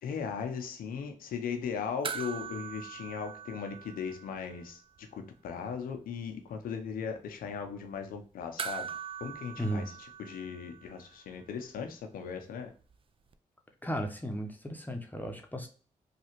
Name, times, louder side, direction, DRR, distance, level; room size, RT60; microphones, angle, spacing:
voice 1, 0.0-4.8 5.1-8.9 9.2-9.8 10.2-12.7, left 6 dB, 80° left, 0.6 m, -38 dB
sound 1, 2.0-4.7 5.0-5.1 8.6-11.2 13.3-13.4, right 7 dB, 40° right, 0.4 m, -41 dB
voice 2, 13.8-15.7, equal, 10° left, 0.8 m, -35 dB
3.2 x 2.4 x 2.9 m
supercardioid pair, 45°, 15 cm